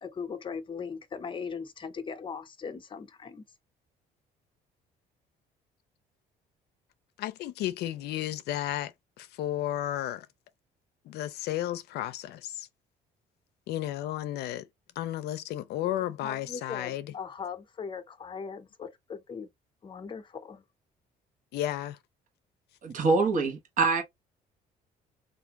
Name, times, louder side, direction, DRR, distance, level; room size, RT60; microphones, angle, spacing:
voice 1, 0.0-3.4 16.2-19.5 19.8-20.6, left 6 dB, 30° left, 0.8 m, -39 dB
voice 2, 7.2-10.3 11.1-12.7 13.7-14.7 15.0-17.1 21.5-22.0, left 13 dB, 75° left, 0.5 m, -33 dB
voice 3, 22.8-24.0, right 4 dB, 50° right, 1.1 m, -25 dB
3.5 x 2.5 x 2.9 m
cardioid pair, 110°, 17 cm